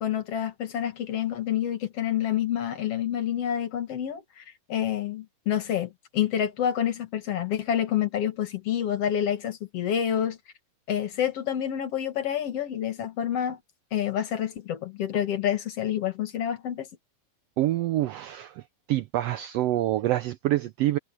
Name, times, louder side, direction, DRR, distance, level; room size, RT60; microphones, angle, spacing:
voice 1, 0.0-10.4 10.9-13.6 13.9-16.9, left 10 dB, 60° left, 2.4 m, -28 dB
voice 2, 17.6-18.6 18.9-21.0, right 14 dB, 80° right, 1.4 m, -26 dB
omnidirectional pair, 3.4 m